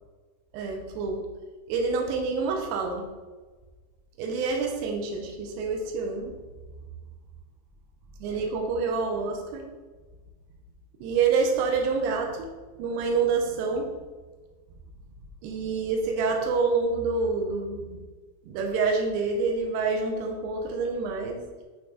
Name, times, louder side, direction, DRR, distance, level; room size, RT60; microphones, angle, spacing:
voice 1, 0.5-1.3 1.7-3.1 4.2-6.4 8.2-9.6 11.0-12.5 12.8-13.9 15.4-18.0 18.4-21.4, right 4 dB, 80° right, 2 dB, 2.6 m, -27 dB
8.3 x 3.1 x 3.9 m, 1.3 s
omnidirectional pair, 5.4 m